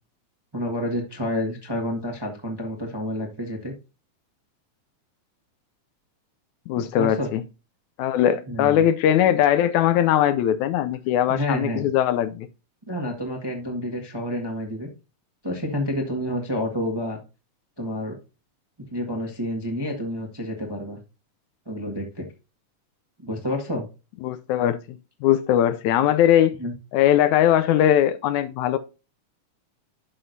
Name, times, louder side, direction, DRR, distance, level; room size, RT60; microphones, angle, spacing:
voice 1, 0.5-3.7 6.7-7.3 8.5-8.8 11.3-11.9 12.9-14.9 15.4-17.2 17.8-18.1 18.9-21.0 21.6-22.2 23.2-23.9 26.6-26.7, left 1 dB, 15° right, 0.9 m, -29 dB
voice 2, 6.7-7.4 8.0-12.5 24.2-26.6 26.9-28.8, left 11 dB, 80° left, 1.9 m, -20 dB
11.0 x 6.2 x 2.7 m
omnidirectional pair, 3.5 m